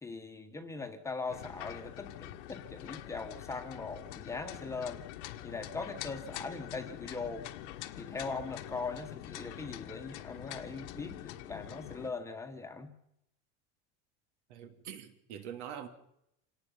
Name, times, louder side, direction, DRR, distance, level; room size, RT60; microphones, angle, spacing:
voice 1, 0.0-5.0 5.4-7.5 8.0-12.9, left 4 dB, 10° left, 1.4 m, -40 dB
sound 1, 1.3-12.1, left 13 dB, 80° left, 1.7 m, -45 dB
voice 2, 14.5-15.9, right 9 dB, 75° right, 3.2 m, -44 dB
27.0 x 18.5 x 5.6 m
supercardioid pair, 165°, 35 cm